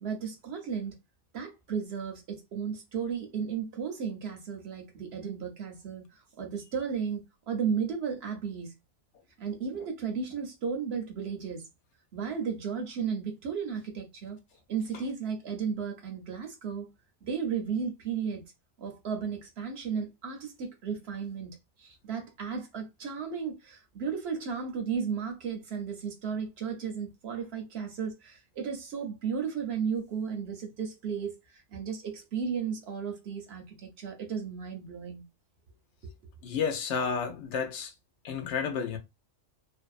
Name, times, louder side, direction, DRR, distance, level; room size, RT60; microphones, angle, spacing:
voice 1, 0.0-1.0 1.3-6.1 6.4-8.7 9.4-11.6 12.1-14.4 14.7-16.9 17.2-18.4 18.8-35.2 36.0-36.1, right 6 dB, 65° right, 0.8 m, -34 dB
voice 2, 36.4-37.9 38.2-39.0, left 6 dB, 70° left, 0.8 m, -31 dB
2.6 x 2.1 x 2.3 m
omnidirectional pair, 1.3 m